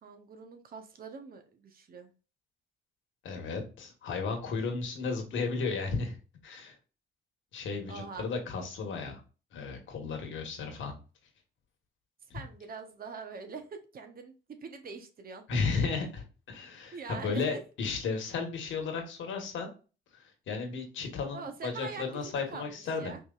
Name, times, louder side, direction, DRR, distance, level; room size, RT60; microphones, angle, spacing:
voice 1, 0.0-2.1 7.9-8.3 12.3-15.4 16.9-17.4 21.3-23.2, right 5 dB, 50° right, 6 dB, 0.9 m, -44 dB
voice 2, 3.2-6.2 6.4-6.8 7.5-9.2 9.5-10.9 12.3-12.4 15.5-19.7 20.1-23.2, left 4 dB, 75° left, 3 dB, 1.5 m, -34 dB
5.0 x 3.1 x 2.5 m, 0.34 s
cardioid pair, 90°, 20 cm